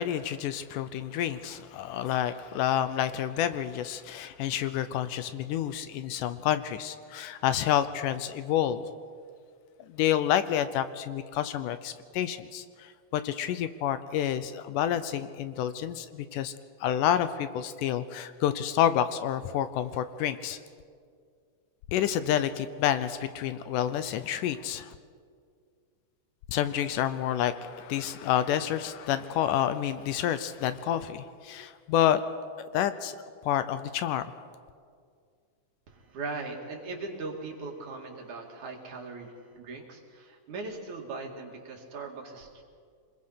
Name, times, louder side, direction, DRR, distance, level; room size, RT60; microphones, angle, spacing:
voice 1, 0.0-8.8 9.9-16.5 16.8-20.6 21.9-24.9 26.5-32.2 32.7-33.2 33.4-34.3, left 10 dB, 80° left, 12 dB, 2.2 m, -29 dB
voice 2, 35.9-42.6, right 3 dB, 60° right, 0 dB, 3.6 m, -39 dB
26.0 x 21.0 x 5.8 m, 2.1 s
omnidirectional pair, 3.9 m